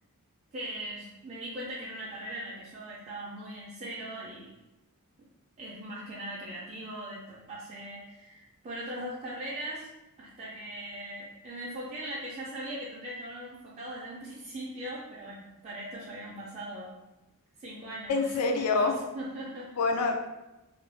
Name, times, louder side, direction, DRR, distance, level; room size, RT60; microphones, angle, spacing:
voice 1, 0.5-4.5 5.6-9.9 10.2-16.9 17.6-19.7, right 1 dB, 30° right, -7 dB, 0.4 m, -40 dB
voice 2, 18.1-19.0 19.8-20.2, left 4 dB, 80° left, 4 dB, 0.3 m, -26 dB
2.4 x 2.1 x 3.3 m, 1.0 s
head